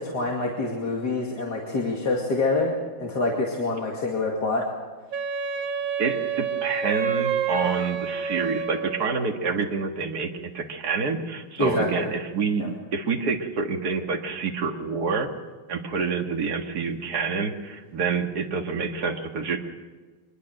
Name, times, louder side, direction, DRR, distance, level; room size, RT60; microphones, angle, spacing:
voice 1, 0.0-2.7 3.0-4.7 11.6-12.1 12.6-12.7, left 3 dB, 50° left, -1 dB, 2.9 m, -26 dB
Wind instrument woodwind instrument, 5.1-9.2, right 6 dB, 70° right, 1.9 m, -28 dB
voice 2, 6.0-15.3 15.7-19.6, right 5 dB, 50° right, 3 dB, 2.2 m, -27 dB
24.5 x 21.0 x 6.6 m, 1.3 s
omnidirectional pair, 2.3 m